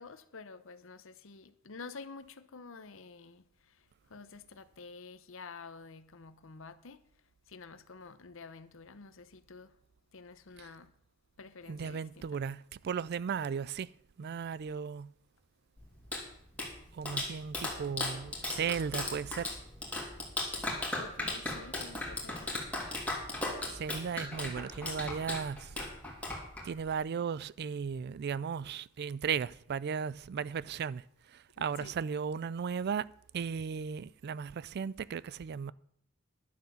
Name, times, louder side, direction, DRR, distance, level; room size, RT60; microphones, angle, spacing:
voice 1, 0.0-3.4 4.1-7.0 7.5-9.7 10.1-10.9 11.4-12.3 20.9-22.5 31.6-31.9, left 4 dB, 70° left, 0.9 m, -49 dB
voice 2, 11.7-13.9 14.2-15.1 16.9-19.5 23.7-25.8 26.6-31.0 31.3-35.7, right 6 dB, 50° right, 0.4 m, -36 dB
Clapping, 15.8-26.9, left 2 dB, 5° left, 3.1 m, -37 dB
11.5 x 7.7 x 7.0 m
head